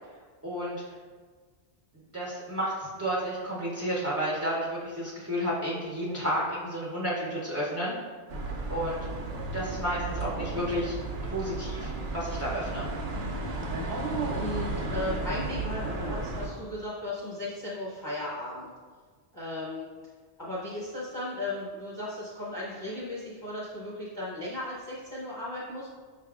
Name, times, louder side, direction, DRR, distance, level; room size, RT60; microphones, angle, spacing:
voice 1, 0.4-0.8 2.1-7.9 8.7-9.0 9.5-10.9 11.2-12.9, equal, 20° right, -7 dB, 0.5 m, -31 dB
sound 1, 8.3-16.5, right 2 dB, 85° right, 0.9 m, -33 dB
voice 2, 14.3-18.7 19.3-19.9 20.4-26.0, left 1 dB, 20° left, -8 dB, 0.8 m, -36 dB
5.4 x 3.4 x 2.4 m, 1.5 s
omnidirectional pair, 1.1 m